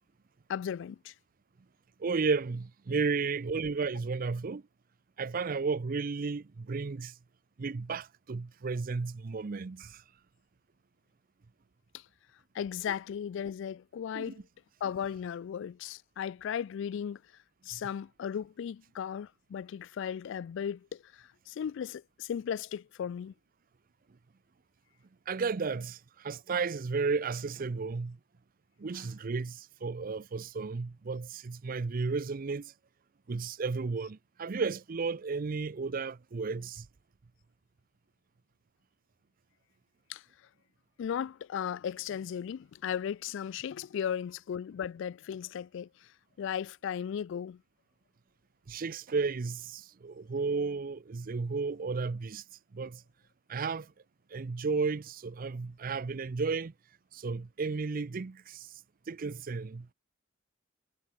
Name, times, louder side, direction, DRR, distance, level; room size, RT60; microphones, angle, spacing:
voice 1, 0.5-1.1 11.9-12.0 12.5-14.4 14.8-17.2 17.6-23.3 40.1-40.2 41.0-46.1 46.4-47.6, left 8 dB, 65° left, 0.3 m, -36 dB
voice 2, 2.0-4.6 5.2-7.1 7.6-10.0 14.1-14.3 17.7-17.8 25.3-28.2 28.8-32.7 33.3-36.9 48.7-52.4 52.7-53.0 53.5-53.9 54.3-56.7 57.1-58.7 59.1-59.9, right 4 dB, 45° right, 0.5 m, -33 dB
head